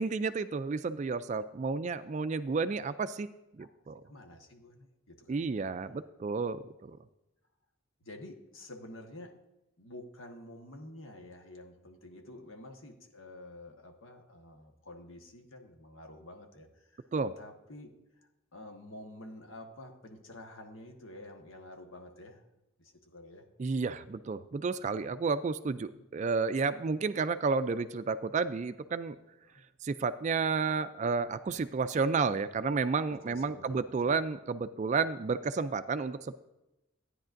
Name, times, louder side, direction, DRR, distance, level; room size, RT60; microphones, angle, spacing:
voice 1, 0.0-3.3 3.6-4.0 5.3-7.0 17.1-17.3 23.6-29.2 29.8-36.3, right 4 dB, 35° right, 12 dB, 0.3 m, -31 dB
voice 2, 4.0-5.6 6.9-7.0 8.0-9.4 9.8-17.0 17.4-17.9 18.5-22.4 22.8-23.5 25.9-26.1 29.4-29.6 33.1-34.3, left 1 dB, 75° left, 3 dB, 1.3 m, -49 dB
13.0 x 9.7 x 2.6 m, 0.94 s
head